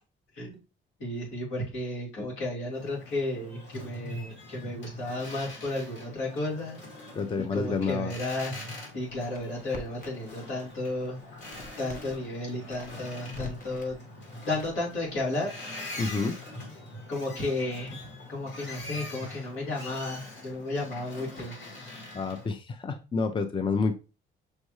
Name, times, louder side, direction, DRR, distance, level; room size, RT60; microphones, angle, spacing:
voice 1, 1.0-6.8 7.4-8.6 8.9-11.2 11.8-13.9 14.5-15.5 16.1-16.2 17.1-21.5, left 2 dB, 85° left, -4 dB, 2.5 m, -33 dB
Boat Water vehicle, 2.7-22.5, left 2 dB, 65° left, 2.1 m, -43 dB
voice 2, 7.1-8.1 16.0-16.4 22.1-24.0, left 4 dB, 25° left, 9 dB, 0.5 m, -29 dB
Crackle, 8.9-10.4 10.6-12.2 12.6-13.9 14.5-15.1, left 1 dB, 45° left, 1.0 m, -46 dB
6.3 x 2.6 x 3.1 m, 0.31 s
cardioid pair, 90°, 20 cm